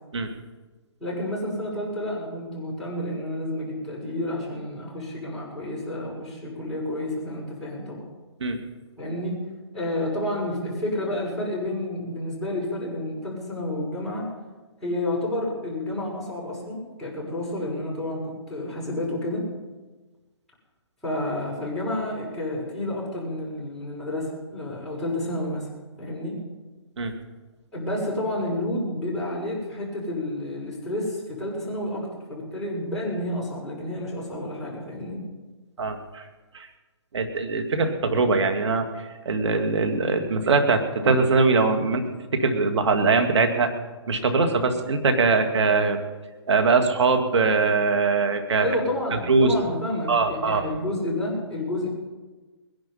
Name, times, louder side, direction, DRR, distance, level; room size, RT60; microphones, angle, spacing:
voice 1, 1.0-8.0 9.0-9.4 9.7-14.3 14.8-19.4 21.0-25.7 26.0-26.4 27.7-35.2 48.6-51.9, left 1 dB, ahead, -10 dB, 6.4 m, -30 dB
voice 2, 35.8-36.2 36.5-36.7 37.1-42.0 42.3-43.7 44.1-46.0 46.5-48.7 49.3-49.6 50.1-50.6, right 4 dB, 70° right, 5 dB, 2.5 m, -22 dB
21.0 x 11.0 x 5.7 m, 1.3 s
hypercardioid pair, 145°, 15 cm